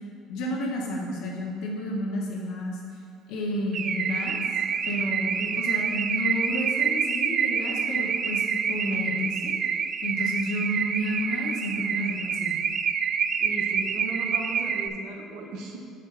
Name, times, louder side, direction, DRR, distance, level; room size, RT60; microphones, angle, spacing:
voice 1, 0.3-2.8 3.3-4.4 4.9-9.5 10.0-12.6, left 1 dB, 75° left, -2 dB, 1.4 m, -31 dB
Car / Alarm, 3.7-14.9, right 6 dB, 50° right, 0.3 m, -27 dB
voice 2, 13.4-15.8, right 3 dB, 70° right, 1 dB, 1.0 m, -36 dB
5.3 x 4.9 x 5.7 m, 2.4 s
supercardioid pair, 85°, 0 cm